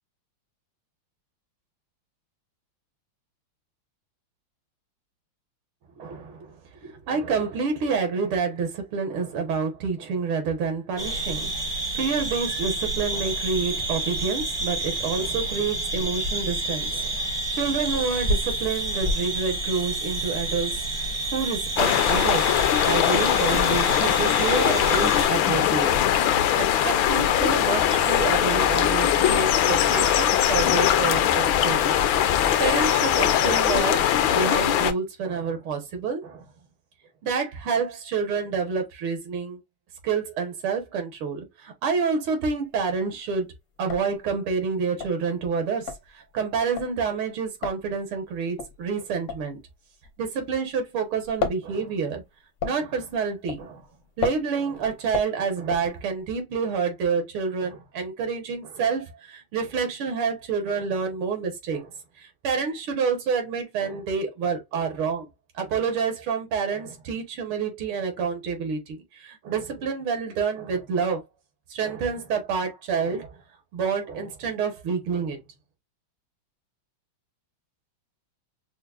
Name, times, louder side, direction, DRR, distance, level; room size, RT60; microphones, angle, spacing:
voice 1, 6.0-22.5 22.9-26.2 26.6-32.1 32.6-34.0 34.3-36.5 37.2-39.6 40.0-43.5 43.8-49.6 50.2-52.2 52.6-53.8 54.2-65.3 65.6-71.2 71.7-73.4 73.7-75.4, right 5 dB, 80° right, 2.0 m, -28 dB
sound 1, 11.0-25.3, right 1 dB, 35° right, 0.3 m, -29 dB
sound 2, 21.8-34.9, left 10 dB, 80° left, 1.3 m, -21 dB
sound 3, 42.5-43.0 43.4-43.5 43.7-50.8 51.1-56.4, left 5 dB, 60° left, 0.8 m, -34 dB
6.1 x 2.1 x 2.3 m
omnidirectional pair, 2.3 m